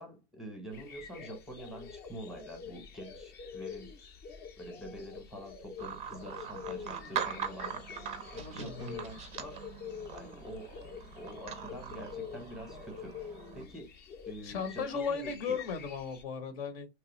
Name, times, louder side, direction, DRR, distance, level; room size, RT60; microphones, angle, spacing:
voice 1, 0.0-3.9 4.6-7.9 8.3-9.5 10.1-10.7 11.1-14.0 14.3-15.6, equal, ahead, 0.8 m, -46 dB
sound 1, 0.7-16.2, left 7 dB, 30° left, 0.6 m, -47 dB
sound 2, 5.8-13.7, right 8 dB, 20° right, 0.4 m, -42 dB
voice 2, 8.4-8.9 14.4-16.9, left 5 dB, 60° left, 0.8 m, -36 dB
2.9 x 2.3 x 3.0 m
hypercardioid pair, 115°, 33 cm